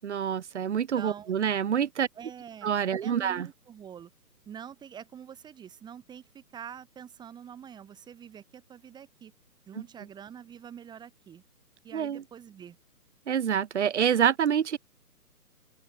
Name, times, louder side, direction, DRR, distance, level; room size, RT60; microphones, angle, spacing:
voice 1, 0.0-2.1 2.6-3.5 9.7-9.8 11.9-12.2 13.3-14.8, right 8 dB, 45° right, 5.0 m, -27 dB
voice 2, 1.0-1.3 2.2-2.7 3.0-4.1 4.5-9.3 9.7-11.4 11.8-12.8, right 8 dB, 10° right, 5.3 m, -45 dB
open air
hypercardioid pair, 155°, 47 cm